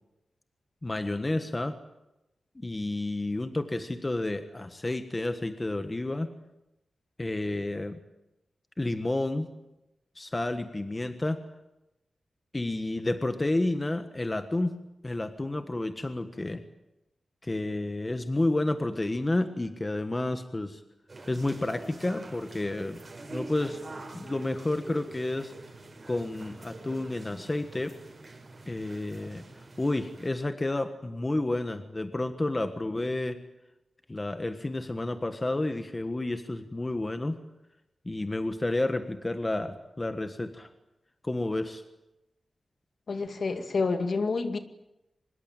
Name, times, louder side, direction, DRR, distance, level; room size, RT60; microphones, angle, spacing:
voice 1, 0.8-1.8 2.5-6.3 7.2-8.0 8.8-9.5 10.1-11.4 12.5-14.8 15.0-16.6 17.4-20.8 21.3-23.0 23.3-23.8 24.1-25.5 26.1-27.9 28.7-29.4 29.8-33.4 34.1-37.4 38.0-40.7 41.2-41.8, left 2 dB, 20° left, 8 dB, 1.4 m, -30 dB
sound 1, 21.1-30.3, right 2 dB, 35° right, 5.3 m, -45 dB
voice 2, 43.1-44.6, left 4 dB, 55° left, 7 dB, 2.2 m, -28 dB
24.5 x 21.5 x 9.0 m, 0.94 s
wide cardioid pair, 150°, 0 cm